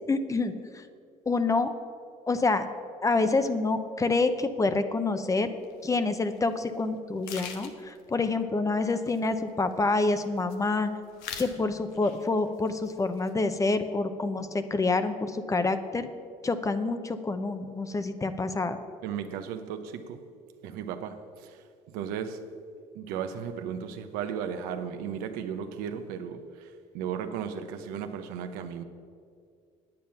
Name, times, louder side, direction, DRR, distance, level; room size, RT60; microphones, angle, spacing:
voice 1, 0.1-0.8 1.3-1.7 2.3-2.6 3.0-5.6 5.8-10.9 11.4-16.1 16.4-18.8, left 3 dB, 20° left, 10 dB, 0.7 m, -27 dB
sound 1, 5.6-5.8 6.4-6.5 6.8-6.9 7.2-8.0 8.9-9.8 10.1-10.7 11.1-11.6 11.9-12.4 12.7-13.3, left 7 dB, 80° left, 1.0 m, -42 dB
voice 2, 19.0-20.2 20.6-22.4 22.9-28.8, right 8 dB, 80° right, 8 dB, 0.8 m, -35 dB
9.1 x 8.7 x 5.6 m, 2.2 s
supercardioid pair, 80°, 15 cm